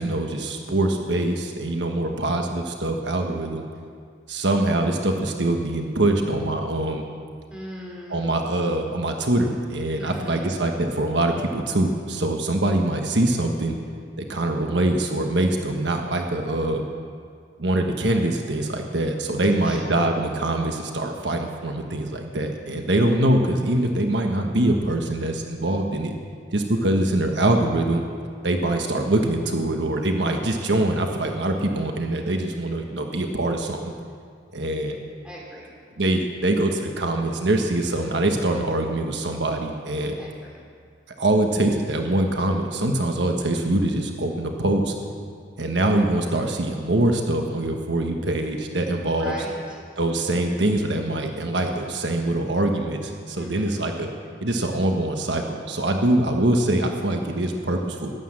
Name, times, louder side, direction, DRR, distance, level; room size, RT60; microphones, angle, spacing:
voice 1, 0.0-3.6 4.3-7.0 8.1-13.8 14.2-16.8 17.6-26.1 26.5-28.0 28.4-33.9 34.5-34.9 36.0-40.1 41.2-44.9 45.6-49.3 50.0-54.1 54.4-58.1, right 1 dB, 75° right, 3 dB, 1.3 m, -23 dB
voice 2, 7.5-8.4 10.0-10.5 19.6-19.8 35.2-35.7 40.2-40.5 49.0-49.8 53.3-53.8, equal, 5° right, -4 dB, 4.0 m, -38 dB
16.0 x 12.0 x 7.5 m, 2.1 s
head